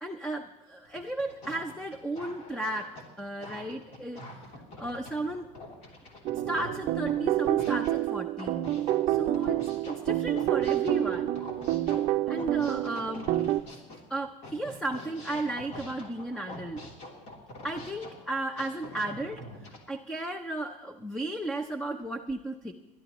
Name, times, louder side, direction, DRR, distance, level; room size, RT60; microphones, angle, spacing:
voice 1, 0.0-2.9 3.2-4.2 4.8-5.5 6.3-8.6 9.1-11.4 12.3-13.3 14.1-16.8 17.6-19.5 19.9-22.7, right 2 dB, 5° left, 7 dB, 0.6 m, -34 dB
sound 1, 0.8-7.9 8.4-14.0 14.4-19.8, left 1 dB, 50° left, 3.0 m, -45 dB
sound 2, 6.2-13.6, right 14 dB, 45° right, 0.5 m, -28 dB
29.0 x 11.5 x 3.0 m, 1.1 s
cardioid pair, 160°, 15 cm